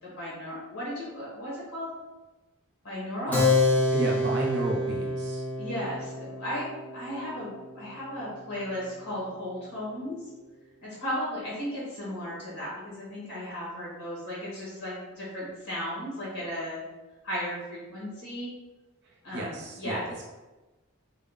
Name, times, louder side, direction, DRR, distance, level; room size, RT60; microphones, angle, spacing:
voice 1, 0.0-1.9 2.8-3.4 5.6-6.7 6.9-10.2 10.8-16.8 17.2-18.5 19.2-20.3, equal, 80° left, -6 dB, 1.5 m, -35 dB
Keyboard (musical), 3.3-9.4, left 2 dB, 5° left, 0.4 m, -28 dB
voice 2, 3.3-3.6 3.9-5.4 19.0-20.3, right 1 dB, 50° right, -2 dB, 0.6 m, -33 dB
4.2 x 2.1 x 3.9 m, 1.1 s
head